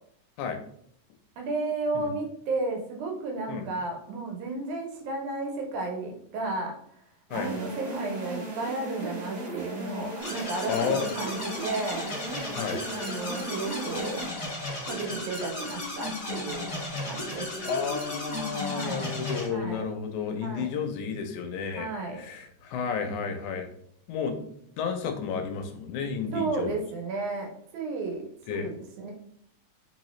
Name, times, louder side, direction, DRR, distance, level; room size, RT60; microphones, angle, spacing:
voice 1, 1.4-6.8 7.3-12.1 12.9-14.3 14.8-17.9 18.7-19.1 19.5-19.8 20.4-20.7 21.7-22.2 26.3-29.1, right 3 dB, 85° right, 2 dB, 2.3 m, -33 dB
sound 1, 7.3-14.3, right 2 dB, 55° right, 1.5 m, -37 dB
sound 2, 10.2-19.5, left 2 dB, 30° left, 1.5 m, -35 dB
voice 2, 10.7-11.0 12.6-12.8 17.7-21.9 22.2-23.7 24.1-24.4 24.8-26.8 28.5-28.7, left 6 dB, 85° left, 6 dB, 2.1 m, -31 dB
4.4 x 3.8 x 3.1 m, 0.67 s
omnidirectional pair, 3.4 m